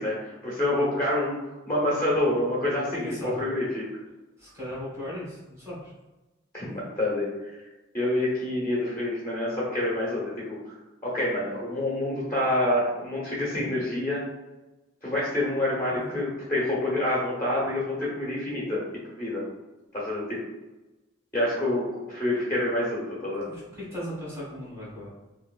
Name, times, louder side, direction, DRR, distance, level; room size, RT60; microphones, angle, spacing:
voice 1, 0.0-1.4 1.7-3.9 6.5-7.3 7.9-10.7 11.0-14.2 15.0-19.4 19.9-20.4 21.3-23.5, left 1 dB, 15° left, -6 dB, 0.9 m, -27 dB
voice 2, 3.0-3.4 4.4-5.9 15.9-16.2 23.5-25.1, equal, 15° right, -9 dB, 1.4 m, -37 dB
4.4 x 2.6 x 2.4 m, 1.1 s
head